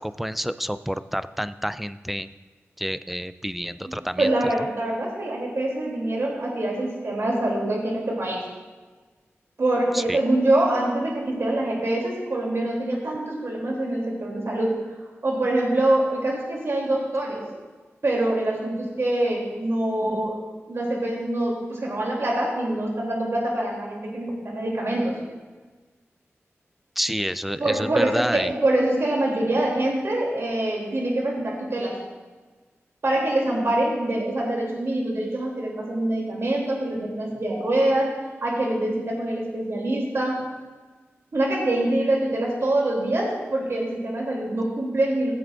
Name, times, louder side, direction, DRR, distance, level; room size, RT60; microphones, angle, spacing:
voice 1, 0.0-2.3 2.8-4.3 9.9-10.2 27.0-28.5, equal, 5° right, 13 dB, 0.4 m, -28 dB
voice 2, 4.2-8.4 9.6-14.8 15.2-17.5 18.0-20.4 20.7-25.2 27.6-32.0 33.0-38.1 38.4-40.4 41.3-45.3, right 1 dB, 60° right, -3 dB, 2.9 m, -25 dB
17.0 x 7.9 x 2.5 m, 1.4 s
cardioid pair, 60°, 5 cm